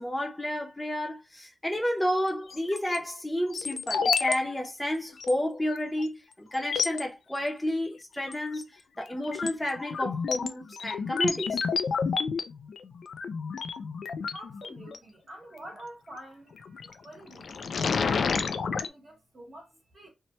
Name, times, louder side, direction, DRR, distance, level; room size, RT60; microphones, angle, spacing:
voice 1, 0.0-8.7 9.0-11.6, left 1 dB, 5° left, 0.6 m, -31 dB
sound 1, 2.5-3.0 3.5-4.4 4.6-4.7 5.2-5.3 6.0-6.1 6.5-7.0 8.3-8.6 9.0-15.0 16.6-16.9 17.3-18.9, left 5 dB, 75° left, 0.3 m, -30 dB
voice 2, 14.3-20.1, right 1 dB, 40° right, 1.0 m, -46 dB
2.8 x 2.1 x 2.9 m
wide cardioid pair, 105°, 0 cm